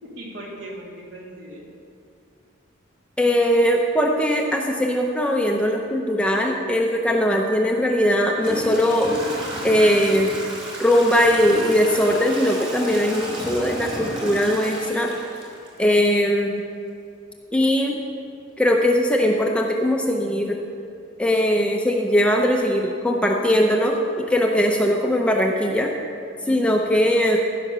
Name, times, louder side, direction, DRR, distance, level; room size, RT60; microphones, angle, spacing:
voice 1, 0.0-1.6 26.4-26.9, equal, 60° right, -4 dB, 2.9 m, -38 dB
voice 2, 3.2-9.1 9.6-10.3 10.8-15.1 15.8-16.6 17.5-18.0 18.6-20.6 21.2-25.9 26.5-27.4, equal, 5° left, 1 dB, 0.6 m, -20 dB
Toilet flush / Trickle dribble, 7.6-7.7 8.3-16.1, right 1 dB, 25° right, 2.5 m, -33 dB
15.0 x 5.8 x 6.8 m, 2.5 s
head